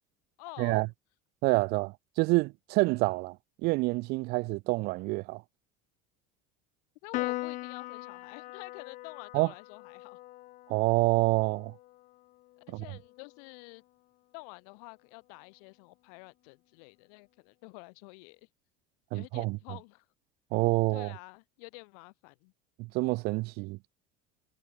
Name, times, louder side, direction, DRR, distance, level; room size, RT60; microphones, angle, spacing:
voice 1, 0.4-0.9 7.0-10.2 12.6-13.8 14.3-18.5 19.1-20.1 20.9-22.5, left 34 dB, 75° left, 5.0 m, -49 dB
voice 2, 1.4-3.3 3.6-5.4 9.3-9.5 10.7-11.7 12.7-12.8 19.1-19.6 20.5-21.1 22.8-23.8, right 24 dB, 55° right, 1.5 m, -27 dB
Piano, 7.1-13.8, left 18 dB, 40° left, 0.8 m, -41 dB
cardioid pair, 175°, 20 cm